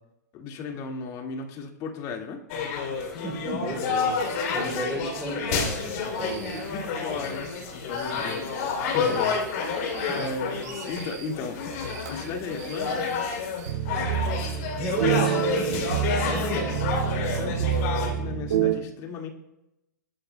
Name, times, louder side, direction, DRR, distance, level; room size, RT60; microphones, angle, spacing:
voice 1, 0.3-2.4 4.5-4.8 6.7-11.7 12.0-13.0 17.3-19.3, left 4 dB, 35° left, 2 dB, 2.1 m, -36 dB
sound 1, 2.5-18.1, left 5 dB, 55° left, 3.3 m, -29 dB
voice 2, 3.1-4.2 4.5-6.6 10.1-10.3 14.7-17.7, right 1 dB, ahead, -1 dB, 3.4 m, -35 dB
sound 2, 5.6-13.7, right 7 dB, 65° right, 4.8 m, -46 dB
sound 3, 13.6-18.7, right 9 dB, 85° right, 2.4 m, -27 dB
23.0 x 11.5 x 2.3 m, 0.92 s
hypercardioid pair, 130°, 10 cm